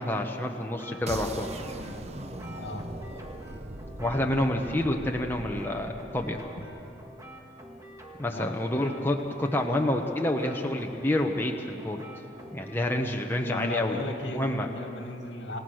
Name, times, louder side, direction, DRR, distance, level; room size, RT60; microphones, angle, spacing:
voice 1, 0.0-1.5 4.0-6.4 8.2-12.1 12.5-14.0 14.3-14.7, left 1 dB, 10° left, 1 dB, 1.0 m, -28 dB
sound 1, 0.6-14.2, equal, 15° right, 2.0 m, -48 dB
sound 2, 1.1-7.0, right 1 dB, 35° right, 0.9 m, -40 dB
voice 2, 13.4-15.6, left 1 dB, 75° left, 3 dB, 2.4 m, -36 dB
28.0 x 17.0 x 6.4 m, 2.9 s
head